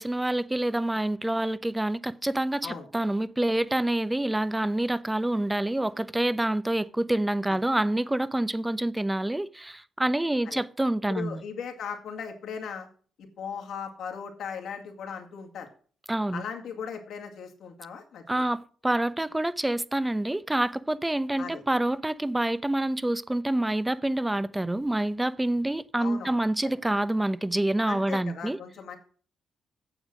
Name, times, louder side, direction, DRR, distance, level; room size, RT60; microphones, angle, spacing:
voice 1, 0.0-11.4 16.1-16.4 18.3-28.6, right 1 dB, 15° right, 0.8 m, -27 dB
voice 2, 11.1-12.9 13.4-15.7 16.3-18.4 21.4-21.6 26.0-26.3 27.9-29.0, left 7 dB, 75° left, 2.2 m, -38 dB
8.9 x 7.3 x 6.1 m
supercardioid pair, 60°, 0 cm